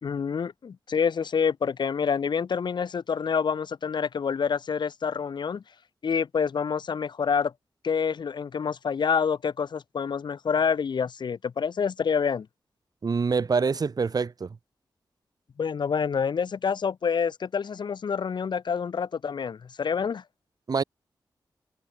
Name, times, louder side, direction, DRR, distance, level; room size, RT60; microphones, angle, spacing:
voice 1, 0.0-5.6 6.0-7.5 7.8-12.5 15.6-20.2, left 6 dB, 75° left, 2.7 m, -27 dB
voice 2, 13.0-14.5 20.7-20.8, right 5 dB, 55° right, 3.3 m, -25 dB
wide cardioid pair, 100°, 8 cm